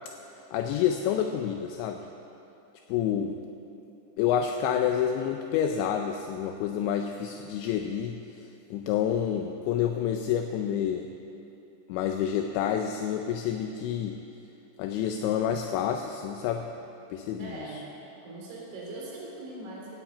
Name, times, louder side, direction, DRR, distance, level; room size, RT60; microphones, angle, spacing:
voice 1, 0.5-2.1 2.9-3.4 4.2-8.2 8.7-11.1 11.9-14.2 14.8-16.7 17.1-17.7, left 9 dB, 85° left, 5 dB, 2.6 m, -28 dB
voice 2, 17.4-17.9 18.2-20.0, right 2 dB, 55° right, -4 dB, 5.1 m, -40 dB
15.0 x 9.2 x 8.5 m, 2.8 s
omnidirectional pair, 5.8 m